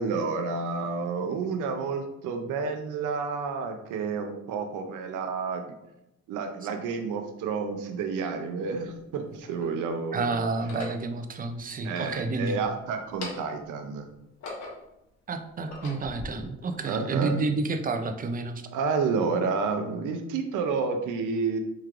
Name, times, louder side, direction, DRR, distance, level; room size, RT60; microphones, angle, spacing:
voice 1, 0.0-5.6 6.3-10.3 11.8-14.1 16.8-17.4 18.7-21.6, right 4 dB, 85° right, 6 dB, 0.6 m, -30 dB
sound 1, 8.0-8.1 9.0-9.8 10.5-11.0 11.8-12.7 13.0-13.7 14.1-15.0 15.5-16.3, left 2 dB, 65° left, 1.1 m, -41 dB
voice 2, 10.1-12.6 15.3-18.6, right 3 dB, 30° right, 7 dB, 0.4 m, -30 dB
4.6 x 3.1 x 2.4 m, 0.87 s
cardioid pair, 90°, 30 cm